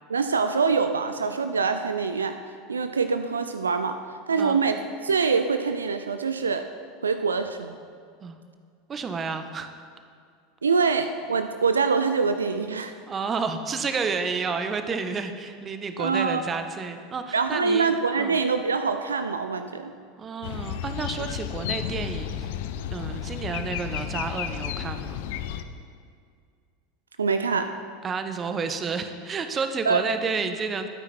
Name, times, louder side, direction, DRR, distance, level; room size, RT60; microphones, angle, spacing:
voice 1, 0.1-2.4 2.7-4.0 4.3-4.8 5.0-6.7 7.0-7.8 10.6-12.9 16.0-16.4 17.3-19.9 27.2-27.7 29.9-30.0, right 5 dB, 80° right, 9 dB, 0.5 m, -24 dB
voice 2, 8.9-9.7 13.1-17.9 18.2-18.4 20.2-22.5 22.9-25.2 28.0-30.9, right 5 dB, 25° right, 8 dB, 1.3 m, -30 dB
sound 1, 20.4-25.6, left 9 dB, 60° left, 0.7 m, -32 dB
21.0 x 9.5 x 4.4 m, 2.1 s
figure-of-eight pair, 80°, 0 cm